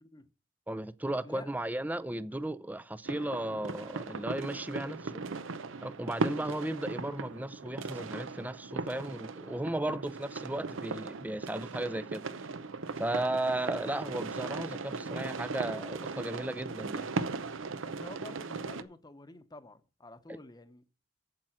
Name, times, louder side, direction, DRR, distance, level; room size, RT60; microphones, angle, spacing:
voice 1, 0.7-5.2 5.8-12.3 13.0-17.1 20.3-20.4, right 1 dB, 10° right, 0.4 m, -35 dB
sound 1, 3.0-18.8, right 3 dB, 80° right, 0.7 m, -38 dB
voice 2, 17.8-20.9, left 2 dB, 20° left, 0.9 m, -49 dB
8.9 x 7.6 x 5.9 m
head